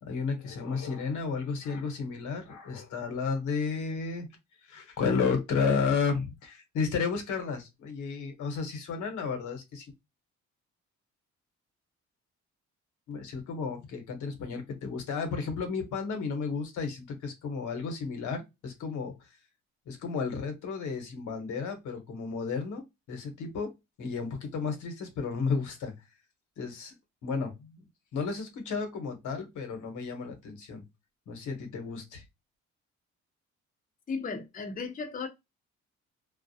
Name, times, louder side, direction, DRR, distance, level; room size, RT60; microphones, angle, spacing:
voice 1, 0.0-4.3 4.6-9.9 13.1-19.1 19.9-23.7 24.0-25.9 26.6-27.0 27.2-27.8 28.1-30.8 31.3-32.2, left 5 dB, 80° left, 1.0 m, -32 dB
voice 2, 34.1-35.3, left 4 dB, 25° left, 0.6 m, -35 dB
2.3 x 2.0 x 2.7 m
cardioid pair, 90°, 30 cm